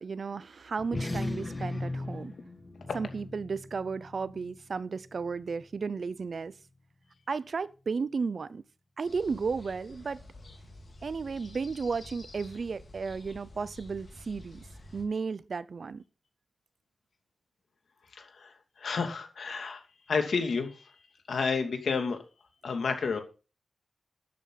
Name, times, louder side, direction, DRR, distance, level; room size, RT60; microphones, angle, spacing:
voice 1, 0.0-2.3 2.9-6.5 7.3-8.6 9.0-10.2 11.0-14.6 14.9-16.0, right 5 dB, 60° right, 0.6 m, -34 dB
sound 1, 0.8-5.6, left 2 dB, 20° left, 2.3 m, -38 dB
sound 2, 9.0-15.0, left 1 dB, 45° left, 3.7 m, -49 dB
voice 2, 18.1-19.8 20.1-20.8 21.3-22.2 22.6-23.2, left 5 dB, 85° left, 2.6 m, -30 dB
12.5 x 10.5 x 4.1 m
wide cardioid pair, 130°, 0 cm